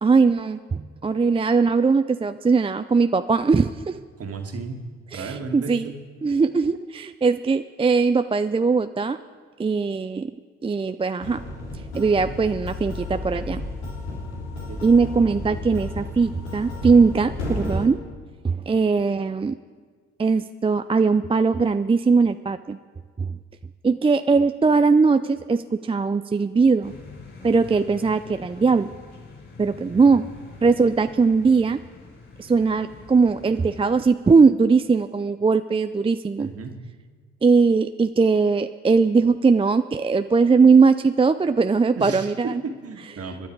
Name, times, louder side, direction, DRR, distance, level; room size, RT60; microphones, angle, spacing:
voice 1, 0.0-4.0 5.1-5.9 6.2-9.2 9.6-10.3 10.6-11.4 11.9-13.6 14.8-18.0 18.4-19.5 20.2-22.8 23.2-23.4 23.8-26.9 27.4-28.9 29.6-30.2 30.6-31.8 32.4-36.5 37.4-42.6, right 4 dB, 15° right, 9 dB, 0.5 m, -20 dB
voice 2, 4.2-4.8 5.1-6.0 12.2-12.4 14.7-14.8 29.9-30.3 36.4-36.8 42.0-43.5, right 4 dB, 50° right, 4 dB, 2.2 m, -34 dB
sound 1, 11.2-17.9, left 2 dB, 90° left, 3.4 m, -33 dB
sound 2, 26.8-34.1, left 4 dB, 40° left, 6.4 m, -44 dB
26.0 x 10.0 x 4.7 m, 1.5 s
hypercardioid pair, 55°, 32 cm